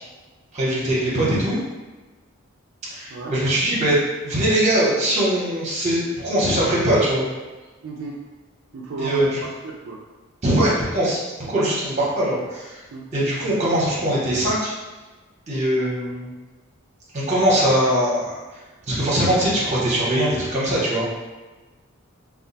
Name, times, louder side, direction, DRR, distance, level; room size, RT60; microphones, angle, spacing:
voice 1, 0.5-1.6 2.9-7.3 9.0-9.2 10.4-12.8 13.1-14.7 15.5-16.3 17.1-18.3 18.9-21.0, right 1 dB, 35° right, -6 dB, 0.9 m, -21 dB
voice 2, 7.8-8.2 8.7-9.3 9.6-10.0 12.9-13.1, right 3 dB, 65° right, -4 dB, 0.4 m, -32 dB
2.3 x 2.1 x 3.9 m, 1.3 s
head